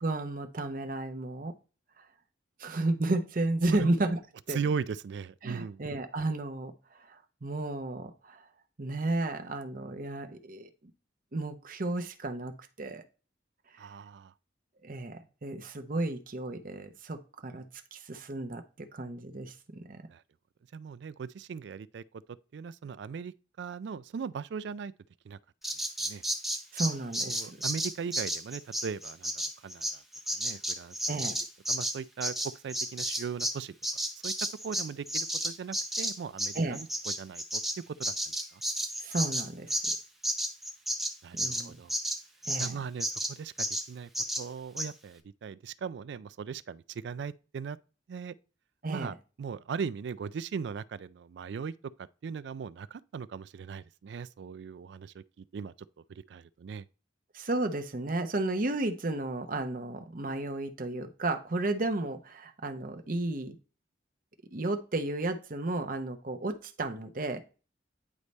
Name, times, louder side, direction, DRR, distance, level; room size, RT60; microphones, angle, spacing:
voice 1, 0.0-1.6 2.6-4.2 4.5-4.6 5.4-8.4 8.8-10.7 11.3-12.5 12.8-13.0 13.8-13.9 14.8-17.6 17.9-20.1 26.7-27.5 31.1-31.3 36.5-36.8 39.0-39.7 41.3-41.7 42.5-42.8 48.8-49.1 57.3-63.6 64.5-67.4, right 2 dB, 45° right, 0.7 m, -33 dB
voice 2, 4.5-5.8 13.8-14.3 20.1-20.2 20.7-22.0 22.5-24.9 25.3-25.4 26.0-26.2 27.3-29.3 29.6-30.0 30.4-30.9 31.7-32.3 32.6-33.7 34.2-34.3 34.6-37.6 37.9-38.1 38.5-38.6 41.2-41.9 42.6-44.1 44.4-47.8 48.1-48.4 48.9-51.7 52.2-55.7 56.1-56.9, right 6 dB, 70° right, 0.3 m, -38 dB
Bird vocalization bird call bird song, 25.6-33.6 33.8-42.7 43.0-43.3 43.6-43.9 44.2-44.4 44.8-44.9, right 1 dB, ahead, 0.6 m, -32 dB
9.7 x 3.3 x 4.1 m
head